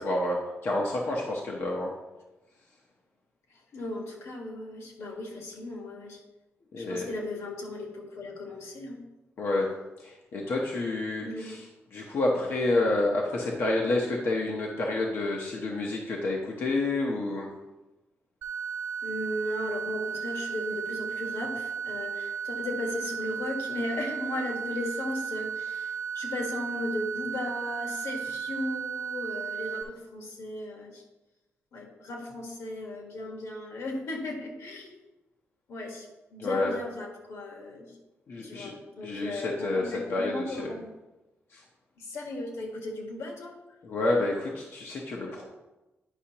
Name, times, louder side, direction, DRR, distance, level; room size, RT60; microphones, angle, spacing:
voice 1, 0.0-1.9 6.7-7.1 9.4-9.7 10.0-17.5 36.4-36.8 38.3-38.7 39.0-40.8 41.5-41.6 43.8-45.4, left 2 dB, 60° left, -1 dB, 0.9 m, -29 dB
voice 2, 3.5-6.2 6.8-9.0 11.2-11.5 19.0-31.0 31.7-35.0 35.7-38.0 38.4-40.9 42.0-43.6, left 2 dB, 90° left, 1 dB, 1.5 m, -36 dB
sound 1, 18.4-29.8, right 7 dB, 65° right, 0.9 m, -35 dB
9.9 x 5.6 x 2.9 m, 1.1 s
wide cardioid pair, 170°, 5 cm